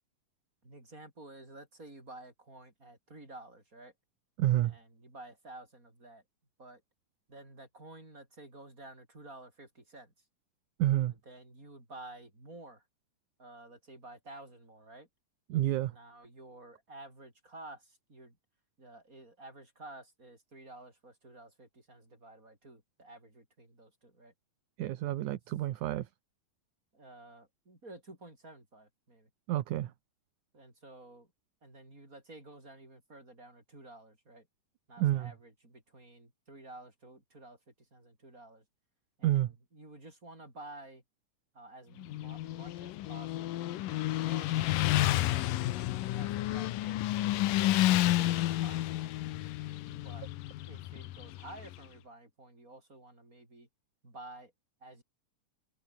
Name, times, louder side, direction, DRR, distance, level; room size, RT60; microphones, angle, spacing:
voice 1, 0.6-3.9 4.6-6.2 6.6-6.8 7.3-10.3 11.3-12.9 13.4-15.1 15.9-18.4 18.8-24.3 26.9-29.3 29.8-29.9 30.5-31.3 31.6-34.5 34.9-38.6 39.2-39.4 39.7-41.0 41.5-44.6 44.9-45.8 46.1-48.1 48.5-49.2 49.9-50.3 50.7-53.7 54.0-54.5 54.8-55.0, right 2 dB, 25° right, 8.2 m, -52 dB
voice 2, 4.4-4.7 10.8-11.1 15.5-16.0 24.8-26.1 29.5-29.9 35.0-35.3 39.2-39.5, right 14 dB, 70° right, 2.4 m, -29 dB
Motorcycle, 42.0-51.8, left 15 dB, 90° left, 2.7 m, -31 dB
omnidirectional pair, 3.7 m